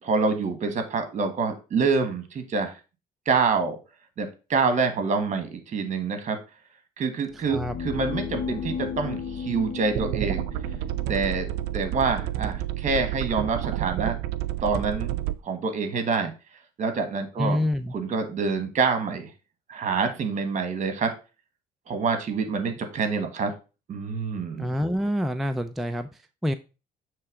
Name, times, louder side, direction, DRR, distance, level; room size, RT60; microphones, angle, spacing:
voice 1, 0.0-2.7 3.2-3.7 4.2-6.4 7.0-10.4 11.1-11.5 11.7-14.2 14.6-16.3 16.8-17.6 17.9-19.3 19.7-21.1 21.9-23.5 23.9-24.7, right 4 dB, 45° right, 1.5 m, -26 dB
sound 1, 7.3-13.2, left 6 dB, 50° left, 0.6 m, -36 dB
sound 2, 10.0-15.4, right 14 dB, 90° right, 0.4 m, -30 dB
voice 2, 17.4-17.9 24.6-26.5, equal, ahead, 0.4 m, -27 dB
6.9 x 3.3 x 4.8 m
cardioid pair, 110°, 17 cm